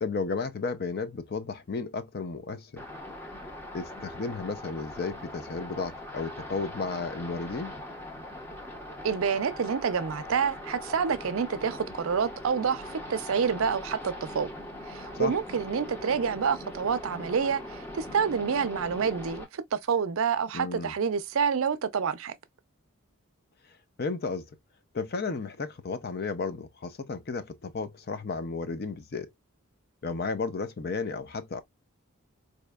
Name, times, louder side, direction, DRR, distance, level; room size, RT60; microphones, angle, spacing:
voice 1, 0.0-2.8 3.7-7.7 15.1-15.3 20.5-20.9 24.0-24.5 24.9-29.3 30.0-31.6, left 4 dB, 45° left, 0.5 m, -33 dB
sound 1, 2.8-19.4, left 1 dB, 10° left, 0.7 m, -41 dB
voice 2, 9.0-14.5 14.9-22.3, right 6 dB, 65° right, 0.5 m, -28 dB
4.2 x 2.7 x 2.3 m
head